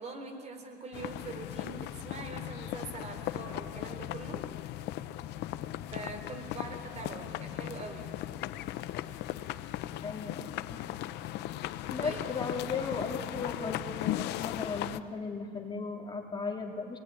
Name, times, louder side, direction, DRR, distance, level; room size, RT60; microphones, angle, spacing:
voice 1, 0.0-4.5 5.9-8.2 12.0-12.3, right 3 dB, 40° right, 5 dB, 4.0 m, -43 dB
sound 1, 0.9-15.0, left 13 dB, 85° left, 0.8 m, -37 dB
voice 2, 10.0-10.8 11.9-17.0, left 4 dB, 25° left, 1 dB, 3.4 m, -36 dB
26.5 x 20.0 x 9.8 m, 2.4 s
cardioid pair, 110°, 17 cm